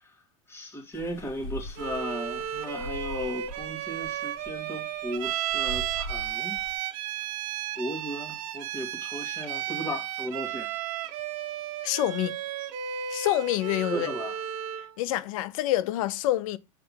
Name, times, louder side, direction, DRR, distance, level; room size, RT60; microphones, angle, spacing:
voice 1, 0.5-6.6 7.8-10.7 13.9-14.4, equal, 15° left, 1.9 m, -36 dB
sound 1, 0.9-6.8, right 1 dB, 50° left, 2.0 m, -42 dB
Bowed string instrument, 1.8-14.9, right 10 dB, 55° right, 0.9 m, -34 dB
voice 2, 11.8-12.4 13.1-14.1 15.0-16.6, left 14 dB, 70° left, 0.6 m, -27 dB
5.8 x 3.3 x 5.5 m
supercardioid pair, 125°, 18 cm